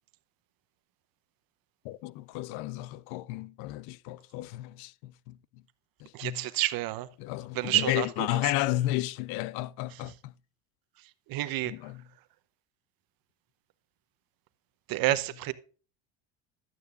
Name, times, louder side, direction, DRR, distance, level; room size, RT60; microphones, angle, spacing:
voice 1, 1.8-5.4 6.0-6.5 7.2-10.3 11.7-12.0, left 16 dB, 75° left, 0.6 m, -33 dB
voice 2, 6.1-7.1 7.5-8.1 8.3-8.4 11.3-11.7 14.9-15.5, right 16 dB, 60° right, 0.9 m, -29 dB
12.0 x 9.5 x 2.5 m
supercardioid pair, 85°, 38 cm